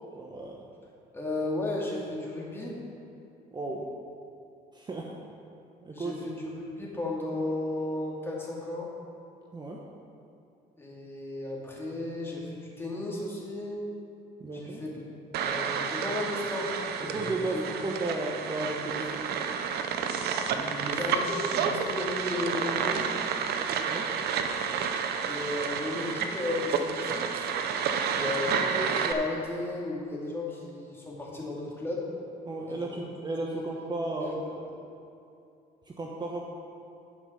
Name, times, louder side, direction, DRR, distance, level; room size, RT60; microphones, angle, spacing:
voice 1, 0.1-0.6 3.5-3.9 4.7-5.1 5.8-6.1 9.5-9.8 14.4-14.8 17.1-19.2 20.5-21.0 23.9-24.1 28.2-28.3 32.4-34.3 35.9-36.4, right 2 dB, 25° right, -1 dB, 1.0 m, -34 dB
voice 2, 1.1-2.7 5.9-8.9 10.8-13.8 14.5-15.0 15.4-17.2 17.5-17.6 20.8-23.2 25.2-27.5 28.1-32.1 32.7-33.0 34.2-34.4, left 2 dB, 15° left, -4 dB, 2.3 m, -34 dB
sound 1, 15.3-29.1, right 6 dB, 70° right, 0.7 m, -30 dB
11.0 x 6.1 x 5.7 m, 2.7 s
cardioid pair, 110°, 17 cm